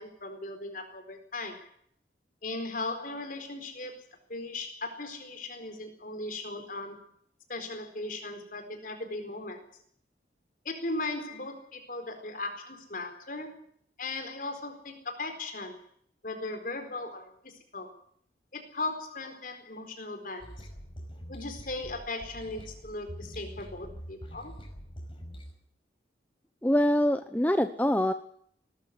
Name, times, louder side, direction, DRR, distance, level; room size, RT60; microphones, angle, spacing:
voice 1, 0.0-1.7 2.4-7.1 7.5-9.6 10.6-13.6 14.0-15.8 16.2-18.0 18.5-20.7 21.3-24.5, left 2 dB, 50° left, 6 dB, 4.3 m, -38 dB
sound 1, 20.4-25.5, equal, 30° left, 5.3 m, -44 dB
voice 2, 26.6-28.1, left 1 dB, 10° left, 9 dB, 0.8 m, -24 dB
19.5 x 13.5 x 9.8 m, 0.64 s
head